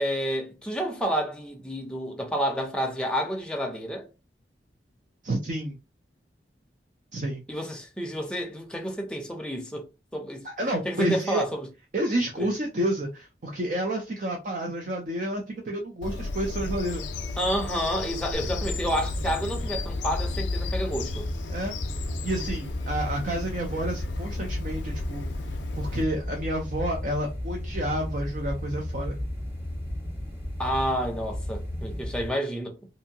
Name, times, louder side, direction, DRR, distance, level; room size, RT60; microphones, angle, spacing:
voice 1, 0.0-4.1 7.5-9.8 10.1-10.5 10.8-11.7 12.4-12.5 17.4-21.3 30.6-32.8, equal, 5° left, 0.5 m, -29 dB
voice 2, 5.2-5.8 7.1-7.4 10.4-11.4 11.9-17.0 21.5-21.8 22.2-29.2, right 1 dB, 45° right, 0.5 m, -30 dB
Bird vocalization bird call bird song, 16.0-26.0, left 3 dB, 85° left, 0.4 m, -34 dB
sound 1, 18.3-32.3, left 1 dB, 15° right, 0.9 m, -34 dB
2.7 x 2.6 x 2.7 m
head